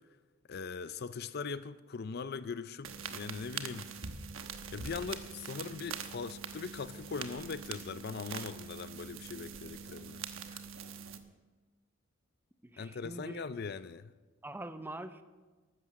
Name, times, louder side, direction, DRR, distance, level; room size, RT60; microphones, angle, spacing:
voice 1, 0.5-3.9 4.7-10.2 10.5-10.6 12.8-14.1, left 5 dB, 50° left, 0.5 m, -40 dB
sound 1, 2.8-11.2, right 6 dB, 80° right, 1.1 m, -43 dB
voice 2, 12.6-13.4 14.4-15.2, right 1 dB, 10° right, 0.7 m, -44 dB
14.5 x 12.0 x 6.5 m
head